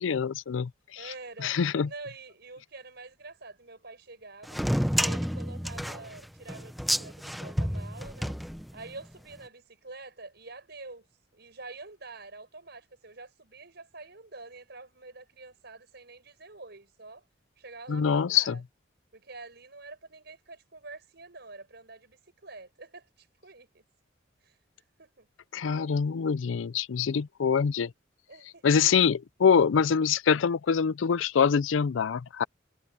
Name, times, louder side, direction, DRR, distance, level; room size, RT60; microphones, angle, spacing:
voice 1, 0.0-1.1 1.4-1.9 17.9-18.6 25.5-27.9 28.6-32.4, left 6 dB, 90° left, 0.4 m, -25 dB
voice 2, 0.9-4.6 4.9-8.3 8.7-11.1 11.3-17.2 17.6-18.6 19.1-23.8 24.4-24.6 25.0-25.3 28.3-28.7, right 3 dB, 60° right, 6.6 m, -47 dB
sound 1, 4.5-9.0, equal, ahead, 0.9 m, -30 dB
head